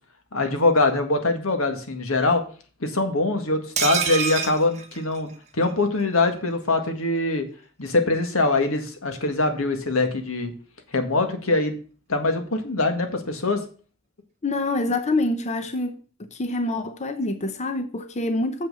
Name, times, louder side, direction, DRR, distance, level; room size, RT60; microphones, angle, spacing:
voice 1, 0.3-2.4 2.8-5.3 5.6-7.5 7.8-10.5 10.9-11.8 12.1-13.6, left 2 dB, 70° left, 1.8 m, -23 dB
sound 1, 3.8-5.7 6.0-6.1 6.4-6.5, right 6 dB, 35° right, 1.2 m, -27 dB
voice 2, 14.4-16.0 16.3-18.7, left 2 dB, 35° left, 0.7 m, -26 dB
7.4 x 5.9 x 6.9 m
head